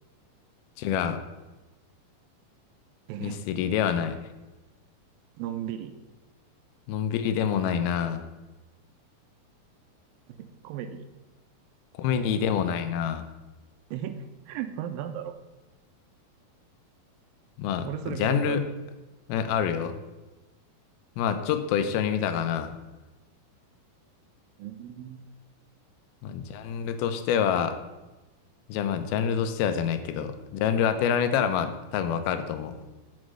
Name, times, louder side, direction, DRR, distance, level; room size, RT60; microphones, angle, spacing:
voice 1, 0.8-1.2 3.2-4.2 6.9-8.3 11.9-13.3 17.6-18.7 19.3-20.0 21.2-22.7 26.2-27.8 28.7-32.8, left 8 dB, 85° left, 9 dB, 2.6 m, -27 dB
voice 2, 3.1-3.5 5.4-5.9 10.3-11.1 13.9-15.3 17.8-18.7 21.9-22.0 24.6-25.3, right 9 dB, 80° right, 9 dB, 2.2 m, -36 dB
8.0 x 5.3 x 6.3 m, 1.1 s
omnidirectional pair, 4.3 m